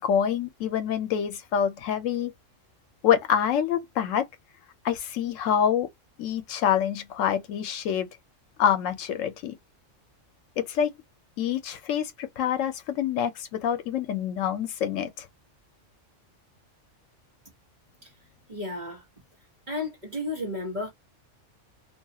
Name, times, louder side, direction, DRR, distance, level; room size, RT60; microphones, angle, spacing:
voice 1, 0.0-2.3 3.0-4.3 4.8-5.9 6.2-8.1 8.6-9.6 10.6-10.9 11.4-15.3, left 9 dB, 80° left, 1.0 m, -26 dB
voice 2, 18.5-19.0 19.7-20.9, left 2 dB, 40° right, 1.1 m, -33 dB
2.8 x 2.3 x 2.7 m
omnidirectional pair, 1.3 m